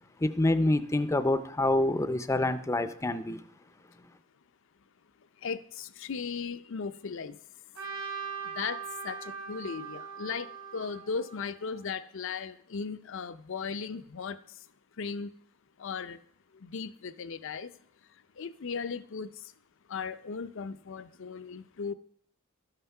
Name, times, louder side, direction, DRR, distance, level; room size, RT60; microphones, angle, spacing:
voice 1, 0.2-3.4, left 2 dB, 15° left, 0.5 m, -27 dB
voice 2, 5.4-7.4 8.4-14.6 15.0-15.3 15.8-16.2 16.5-17.7 18.4-19.5 19.9-21.9, left 5 dB, 65° left, 0.5 m, -37 dB
Trumpet, 7.7-11.9, right 6 dB, 80° right, 3.3 m, -41 dB
13.0 x 5.8 x 5.4 m
head